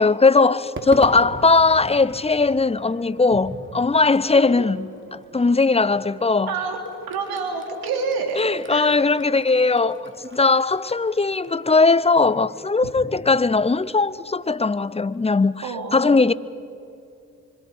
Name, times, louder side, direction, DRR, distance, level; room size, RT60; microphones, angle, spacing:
voice 1, 0.0-6.5 8.4-15.6 15.9-16.3, left 3 dB, 15° left, 0.8 m, -19 dB
Crowd / Fireworks, 0.8-15.2, right 2 dB, 35° right, 2.9 m, -43 dB
voice 2, 6.5-6.8 7.1-8.4 8.7-9.0 15.6-16.2, right 4 dB, 90° right, 3.2 m, -28 dB
25.5 x 25.5 x 5.5 m
supercardioid pair, 50°, 36 cm